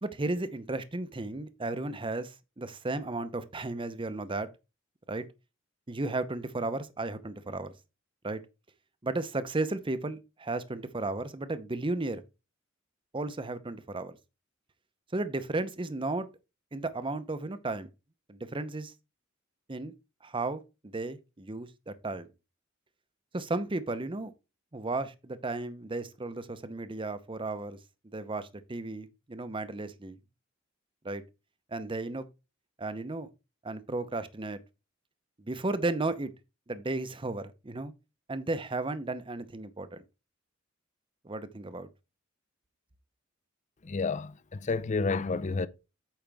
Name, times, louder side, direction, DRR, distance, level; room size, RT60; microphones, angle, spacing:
voice 1, 0.0-4.5 5.1-5.3 5.9-7.7 8.2-8.4 9.0-12.2 13.1-14.2 15.1-16.3 16.7-17.9 18.3-18.9 19.7-19.9 20.2-22.3 23.3-24.3 24.7-27.8 28.1-30.2 31.0-31.2 31.7-32.2 32.8-33.3 33.6-34.6 35.4-36.3 36.7-37.9 38.3-40.0 41.2-41.9, right 2 dB, 25° right, 0.8 m, -34 dB
voice 2, 43.8-45.7, left 4 dB, 40° left, 0.5 m, -30 dB
8.9 x 5.8 x 3.5 m
head